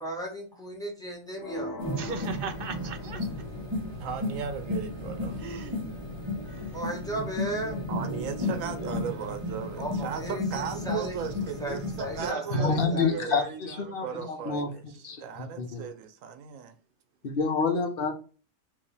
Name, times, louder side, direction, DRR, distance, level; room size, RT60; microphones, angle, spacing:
voice 1, 0.0-1.7 6.7-7.8 9.8-11.2 11.6-13.3, right 1 dB, 5° left, 1.3 m, -35 dB
sound 1, 1.4-3.4, left 1 dB, 75° left, 1.2 m, -40 dB
sound 2, 1.8-12.3, left 2 dB, 20° right, 1.3 m, -34 dB
voice 2, 2.0-3.3 5.4-5.8 8.8-9.3 12.2-12.8 13.1-13.6 14.0-14.2, right 5 dB, 55° right, 0.6 m, -38 dB
voice 3, 4.0-5.4 7.9-13.4 14.0-16.7, right 7 dB, 75° right, 1.1 m, -37 dB
voice 4, 12.5-14.7 15.0-15.2 15.6-15.9 17.2-18.1, left 4 dB, 50° left, 0.9 m, -28 dB
4.7 x 2.7 x 3.4 m
omnidirectional pair, 1.4 m